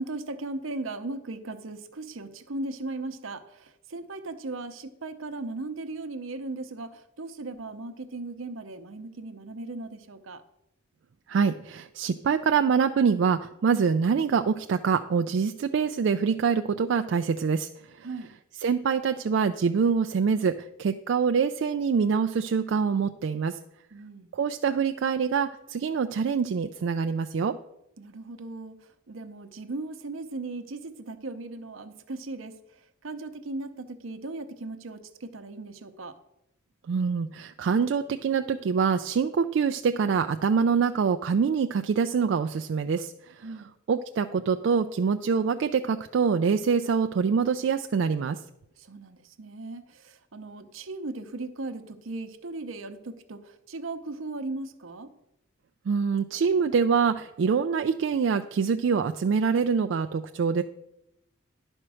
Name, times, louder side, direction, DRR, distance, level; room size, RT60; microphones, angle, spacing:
voice 1, 0.0-10.4 18.0-18.3 23.9-24.3 28.0-28.8 29.1-32.5 33.0-36.2 43.4-43.7 48.8-55.1, right 2 dB, 80° right, 9 dB, 0.8 m, -37 dB
voice 2, 11.3-17.7 18.0-18.1 18.6-23.6 24.3-27.5 36.9-43.5 43.9-48.4 55.9-60.6, right 6 dB, 60° right, 7 dB, 0.3 m, -25 dB
10.5 x 4.4 x 6.2 m, 0.86 s
head